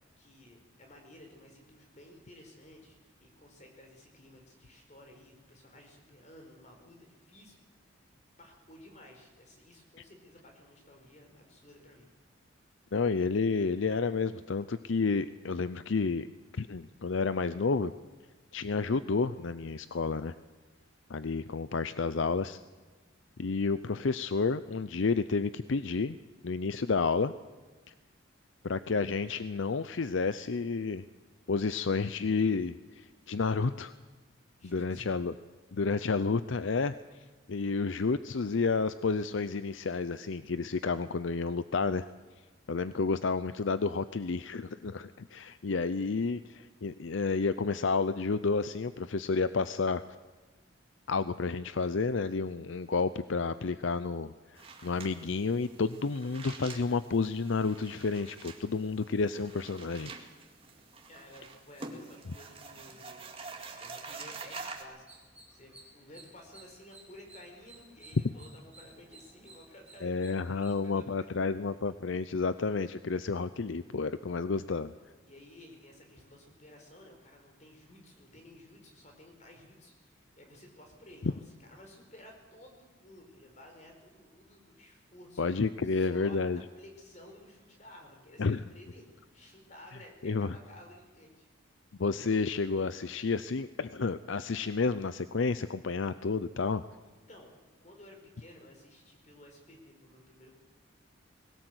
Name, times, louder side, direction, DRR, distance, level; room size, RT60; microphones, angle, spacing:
voice 1, 0.2-8.0 8.3-12.1 34.6-35.1 61.1-63.2 63.8-71.3 75.2-85.4 85.8-91.5 97.3-97.5 97.8-100.5, left 1 dB, 35° left, 3 dB, 4.5 m, -54 dB
voice 2, 12.9-16.3 16.6-17.9 18.5-20.3 21.1-22.6 23.4-26.2 26.4-27.3 28.6-31.1 31.5-33.9 34.6-35.3 35.7-36.9 37.5-42.0 42.7-50.0 51.1-60.1 70.0-74.9 85.4-86.6 88.4-88.6 90.2-90.6 92.0-96.8, left 4 dB, 70° left, 13 dB, 0.6 m, -30 dB
sound 1, 54.6-64.8, right 4 dB, 30° right, 2.1 m, -47 dB
sound 2, 65.0-70.8, right 2 dB, 5° right, 3.5 m, -57 dB
21.0 x 17.5 x 8.1 m, 1.3 s
head